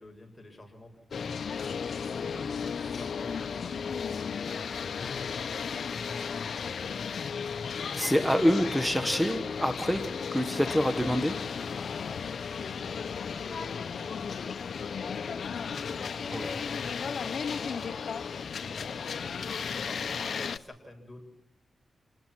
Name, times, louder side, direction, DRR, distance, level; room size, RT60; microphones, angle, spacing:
voice 1, 0.0-1.4 2.1-4.0 4.4-5.7 13.3-14.6 15.2-21.2, left 1 dB, 20° left, 3 dB, 6.5 m, -49 dB
sound 1, 1.1-20.6, left 6 dB, 75° left, 0.8 m, -34 dB
voice 2, 7.8-10.0 10.3-11.4 16.3-16.5, equal, 5° right, 8 dB, 1.5 m, -26 dB
27.5 x 20.0 x 6.1 m, 0.75 s
cardioid pair, 80°, 0 cm